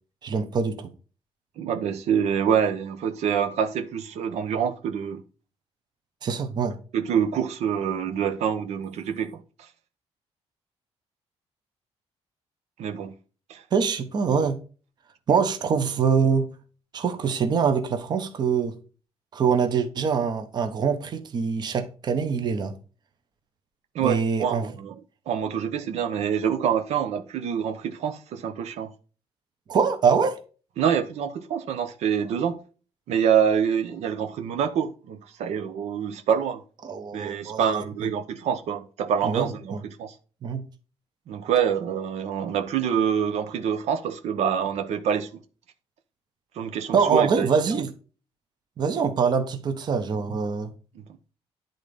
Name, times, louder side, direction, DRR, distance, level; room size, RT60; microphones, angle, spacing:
voice 1, 0.2-0.9 6.2-6.8 13.7-14.6 15.3-16.4 16.9-18.7 19.3-22.7 24.0-24.7 29.7-30.4 36.8-37.8 39.2-39.8 40.4-40.6 46.9-47.9 48.8-50.7, right 6 dB, 40° right, 1.0 m, -24 dB
voice 2, 1.6-5.2 6.9-9.7 12.8-13.1 13.5-13.6 23.9-25.0 25.3-28.9 30.8-32.6 33.1-36.6 37.1-40.1 41.3-45.3 46.5-47.8 50.9-51.0, right 8 dB, 80° right, 1.0 m, -26 dB
10.5 x 4.0 x 5.1 m
cardioid pair, 175°, 11 cm